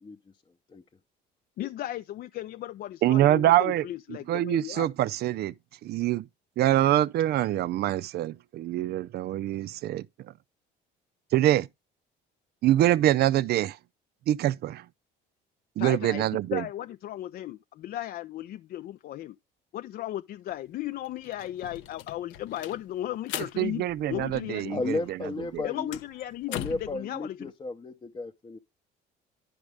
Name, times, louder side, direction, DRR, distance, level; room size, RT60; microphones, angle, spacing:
voice 1, 1.6-4.9 15.8-19.4 19.7-23.8 24.1-24.9 25.6-27.5, left 13 dB, 50° left, 0.4 m, -36 dB
voice 2, 3.0-3.9 4.3-5.5 5.8-6.3 6.6-10.1 11.3-11.7 12.6-13.8 14.3-14.8 15.8-16.6 23.6-25.2 25.5-25.6, right 13 dB, 55° right, 0.4 m, -25 dB
sound 1, 20.5-20.6 20.9-24.8 25.1-27.0, left 12 dB, 80° left, 0.7 m, -41 dB
voice 3, 24.7-26.0 26.5-28.6, left 3 dB, 25° left, 0.7 m, -34 dB
11.0 x 5.2 x 3.4 m
cardioid pair, 105°, 20 cm